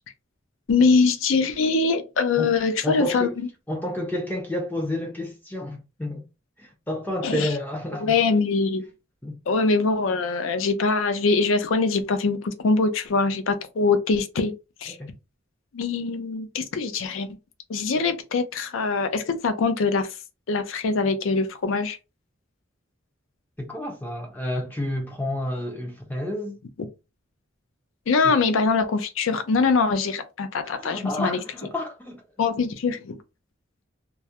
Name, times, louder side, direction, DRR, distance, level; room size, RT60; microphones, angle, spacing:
voice 1, 0.7-3.5 7.2-7.6 8.0-8.8 9.5-14.5 14.8-15.0 15.7-17.3 17.7-20.1 20.5-22.0 26.8-26.9 28.1-31.4 32.4-33.2, left 4 dB, 80° left, 0.4 m, -23 dB
voice 2, 2.8-3.4 3.7-6.3 6.6-8.2 9.2-9.4 14.9-15.1 23.6-26.6 28.2-28.3 30.8-32.5, left 1 dB, 10° left, 0.4 m, -30 dB
2.3 x 2.0 x 2.7 m
head